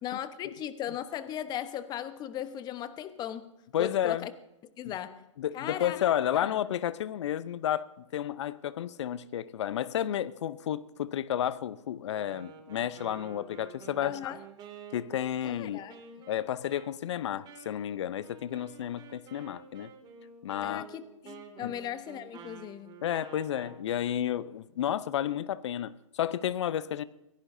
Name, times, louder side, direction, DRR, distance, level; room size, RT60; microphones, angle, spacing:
voice 1, 0.0-3.5 3.8-4.3 4.8-5.2 5.5-6.6 14.0-14.4 15.4-16.0 20.6-23.0, left 10 dB, 25° left, 1.1 m, -38 dB
voice 2, 3.7-4.3 4.8-4.9 5.4-14.3 14.9-15.8 16.3-19.9 20.4-20.8 21.6-21.7 23.0-27.0, left 11 dB, 60° left, 0.8 m, -31 dB
Wind instrument woodwind instrument, 12.1-23.8, right 6 dB, 25° right, 2.4 m, -50 dB
24.5 x 17.0 x 2.7 m
hypercardioid pair, 120°, 16 cm